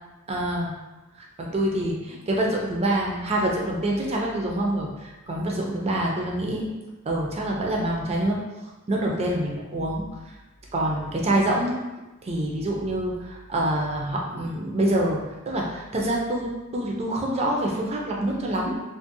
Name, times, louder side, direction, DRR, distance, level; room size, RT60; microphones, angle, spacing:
voice 1, 0.3-0.7 1.4-6.7 7.1-8.4 8.9-10.0 10.7-11.8 12.2-18.8, right 1 dB, 30° right, -2 dB, 0.4 m, -26 dB
2.5 x 2.0 x 2.6 m, 1.1 s
head